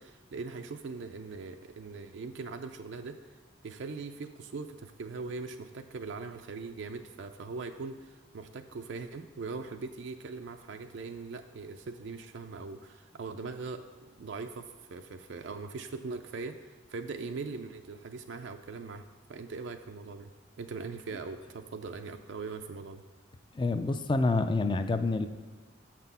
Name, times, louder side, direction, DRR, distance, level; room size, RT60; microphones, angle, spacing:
voice 1, 0.0-3.3 3.6-23.0, right 4 dB, 65° right, 6 dB, 0.4 m, -41 dB
voice 2, 23.6-25.3, left 3 dB, 25° left, 9 dB, 0.4 m, -27 dB
7.2 x 6.0 x 5.5 m, 1.4 s
head